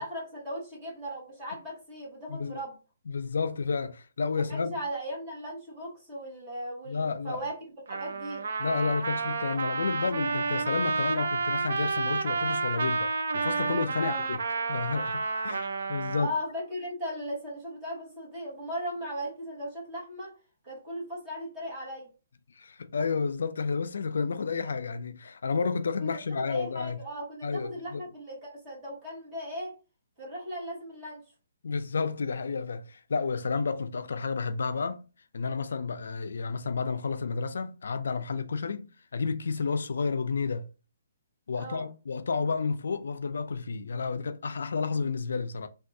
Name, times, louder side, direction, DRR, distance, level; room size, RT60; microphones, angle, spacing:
voice 1, 0.0-2.8 4.5-7.5 7.9-8.4 14.0-14.3 16.2-20.3 20.6-22.1 26.0-29.7 30.2-31.2 41.5-41.9, equal, 15° right, 1.1 m, -37 dB
voice 2, 3.1-4.7 6.9-7.4 8.6-14.4 14.7-16.3 22.6-27.0 27.4-28.0 31.6-35.0 35.3-40.7 41.5-45.7, left 4 dB, 80° left, 0.3 m, -31 dB
Trumpet, 7.9-16.3, right 4 dB, 65° right, 0.4 m, -30 dB
3.4 x 2.2 x 2.6 m
hypercardioid pair, 175°, 0 cm